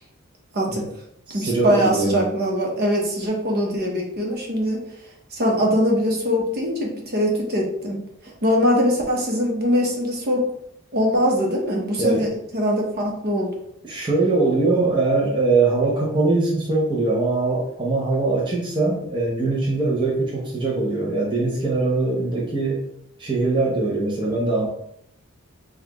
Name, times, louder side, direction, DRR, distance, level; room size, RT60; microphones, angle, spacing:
voice 1, 0.5-0.8 1.3-4.8 5.3-8.0 8.4-10.4 10.9-13.5, equal, 50° right, -1 dB, 0.9 m, -22 dB
voice 2, 1.3-2.2 12.0-12.3 13.8-22.8 23.2-24.7, right 3 dB, 25° right, -4 dB, 0.7 m, -22 dB
5.5 x 2.4 x 2.9 m, 0.74 s
head